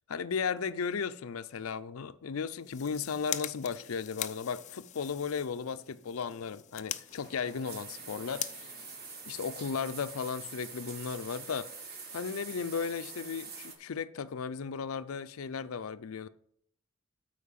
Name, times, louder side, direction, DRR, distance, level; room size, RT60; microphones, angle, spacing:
voice 1, 0.1-8.7 9.3-11.7 12.1-16.3, left 6 dB, 85° left, 0.5 m, -35 dB
sound 1, 2.5-9.8, left 11 dB, 35° left, 0.4 m, -43 dB
sound 2, 7.1-13.7, right 5 dB, 50° right, 1.5 m, -45 dB
8.5 x 4.5 x 7.3 m
head